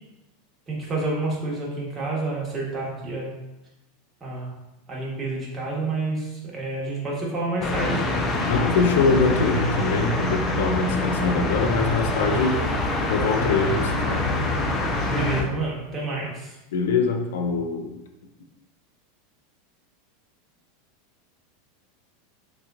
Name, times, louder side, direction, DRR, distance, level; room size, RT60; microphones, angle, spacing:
voice 1, 0.7-3.3 4.2-4.5 4.9-8.0 15.0-16.6, right 2 dB, 20° right, -5 dB, 1.1 m, -29 dB
sound 1, 7.6-15.4, left 2 dB, 30° left, 0.5 m, -25 dB
voice 2, 8.4-12.7 13.0-14.3 16.7-17.9, left 4 dB, 85° left, 5 dB, 0.4 m, -23 dB
3.5 x 3.0 x 2.4 m, 0.97 s
supercardioid pair, 125°, 0 cm